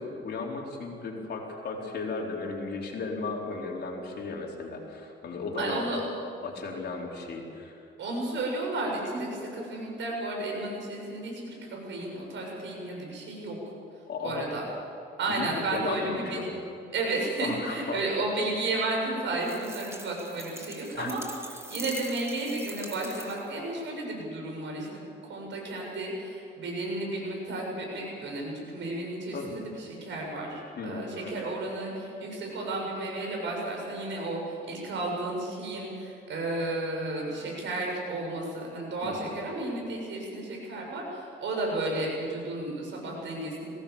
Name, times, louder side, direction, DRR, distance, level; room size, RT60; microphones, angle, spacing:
voice 1, 0.0-6.0 6.4-7.9 14.1-14.5 15.3-15.5 15.7-16.5 17.4-18.1 20.9-21.1 29.3-29.6 30.8-31.3 39.0-39.2, left 4 dB, 55° left, -1 dB, 4.5 m, -35 dB
voice 2, 5.6-6.0 8.0-13.6 14.2-14.6 15.2-16.4 16.9-21.2 21.7-43.7, right 2 dB, 70° right, -1 dB, 7.5 m, -33 dB
sound 1, 19.4-23.6, right 2 dB, 15° right, 1.8 m, -43 dB
22.5 x 17.5 x 7.3 m, 2.5 s
cardioid pair, 90°, 20 cm